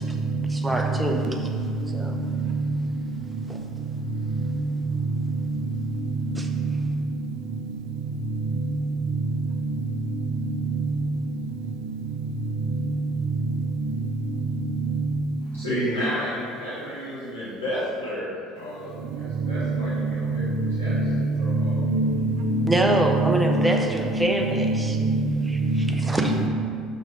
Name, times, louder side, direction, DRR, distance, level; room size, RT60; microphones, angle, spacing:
voice 1, 0.5-1.5 1.9-2.2 3.5-3.6 6.3-6.5 22.7-25.0 25.5-25.6 25.9-26.3, right 1 dB, 10° right, 2 dB, 0.8 m, -25 dB
voice 2, 15.4-18.3 18.5-20.4 20.8-20.9 21.4-21.8, equal, 85° left, -12 dB, 1.4 m, -31 dB
voice 3, 19.8-20.5 20.8-21.2 21.5-23.1 23.4-25.3 25.6-26.5, right 1 dB, 60° right, 7 dB, 0.4 m, -24 dB
6.4 x 5.1 x 3.2 m, 2.2 s
figure-of-eight pair, 60°, 0 cm